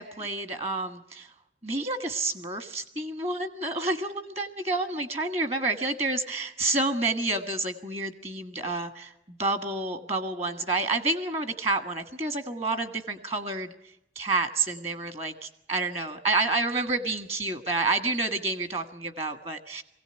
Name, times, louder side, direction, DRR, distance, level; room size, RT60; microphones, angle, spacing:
voice 1, 0.0-1.3 1.6-13.7 14.1-19.8, right 3 dB, 35° right, 9 dB, 1.5 m, -29 dB
24.0 x 17.0 x 8.9 m, 0.84 s
head